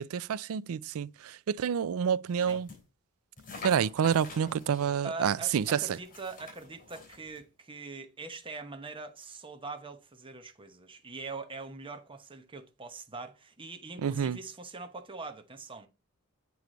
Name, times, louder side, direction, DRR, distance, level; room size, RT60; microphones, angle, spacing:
voice 1, 0.0-2.7 3.6-5.8 14.0-14.4, right 7 dB, 65° right, 0.4 m, -28 dB
sound 1, 2.3-2.8 3.4-4.9 5.5-7.4, left 3 dB, 40° left, 3.3 m, -47 dB
voice 2, 5.0-15.9, right 3 dB, 25° right, 1.0 m, -43 dB
8.2 x 4.7 x 3.9 m
head